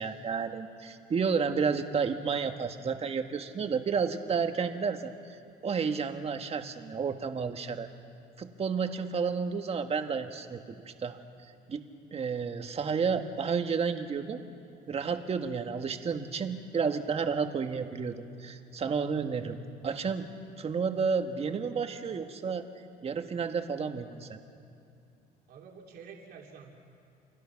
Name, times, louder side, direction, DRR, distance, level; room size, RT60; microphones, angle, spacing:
voice 1, 0.0-5.1 5.6-7.9 8.4-11.2 11.7-11.9 12.1-14.4 14.9-19.6 19.8-20.3 20.6-22.7 23.0-24.4, right 5 dB, 35° right, 6 dB, 1.6 m, -31 dB
voice 2, 25.5-26.7, right 6 dB, 70° right, 0 dB, 3.0 m, -48 dB
29.5 x 23.0 x 6.0 m, 2.6 s
cardioid pair, 110°, 17 cm